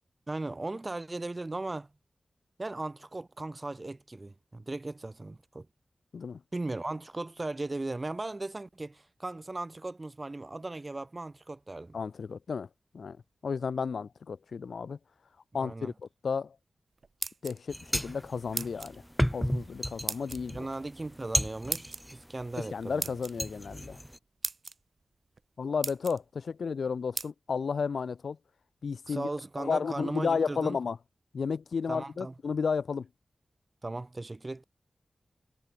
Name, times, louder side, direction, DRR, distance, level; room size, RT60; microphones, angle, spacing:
voice 1, 0.3-1.9 2.6-5.7 6.5-12.0 15.5-15.9 20.5-23.2 29.1-30.8 31.9-32.3 33.8-34.6, right 2 dB, 30° right, 6.6 m, -37 dB
voice 2, 11.9-12.7 12.9-13.2 13.4-15.0 15.5-15.9 16.2-16.5 17.4-19.0 19.3-20.7 22.6-24.0 25.6-28.4 28.8-29.3 29.6-31.0 31.3-33.1, left 5 dB, 90° left, 1.0 m, -32 dB
sound 1, 17.0-17.8 18.5-19.0 20.1-20.4 21.7-22.0 23.0-23.3 24.0-24.1 24.4-24.7 25.4-25.5 25.8-26.2 27.2-27.3, right 4 dB, 55° right, 1.4 m, -35 dB
sound 2, 17.7-22.7 23.1-24.2, equal, ahead, 0.5 m, -33 dB
wide cardioid pair, 105°, 0 cm